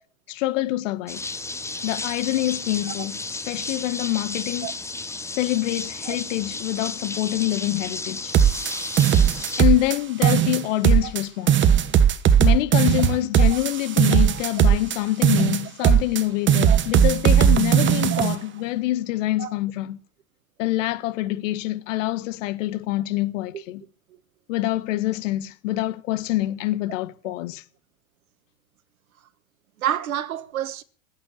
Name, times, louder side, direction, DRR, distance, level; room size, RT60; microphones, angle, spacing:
voice 1, 0.3-1.2 1.8-3.2 3.5-4.7 5.3-8.3 9.6-11.7 12.4-20.0 20.6-23.8 24.5-27.6, left 16 dB, 60° left, 1.7 m, -25 dB
sound 1, 1.1-9.6, left 3 dB, 5° left, 0.9 m, -33 dB
sound 2, 8.3-10.0 10.2-11.2 11.5-15.0 15.2-16.2 16.5-18.3, right 9 dB, 25° right, 1.3 m, -18 dB
voice 2, 14.1-14.6 15.8-15.9 16.7-16.8 18.1-18.3 19.4-19.5 23.5-23.6 27.2-27.3 29.8-30.8, right 11 dB, 80° right, 1.4 m, -30 dB
17.5 x 8.8 x 8.7 m
hypercardioid pair, 95°, 42 cm